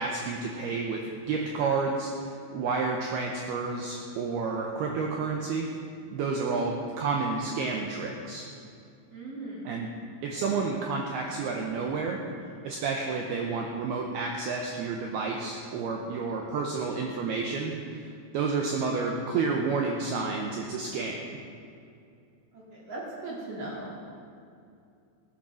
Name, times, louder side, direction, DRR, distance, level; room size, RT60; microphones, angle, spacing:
voice 1, 0.0-5.7 6.1-8.5 9.6-9.9 10.2-12.2 12.6-21.4, right 4 dB, 85° right, 1 dB, 2.2 m, -30 dB
voice 2, 9.1-9.7 22.5-24.0, right 2 dB, 40° right, -5 dB, 2.4 m, -38 dB
17.5 x 9.0 x 6.2 m, 2.4 s
omnidirectional pair, 5.9 m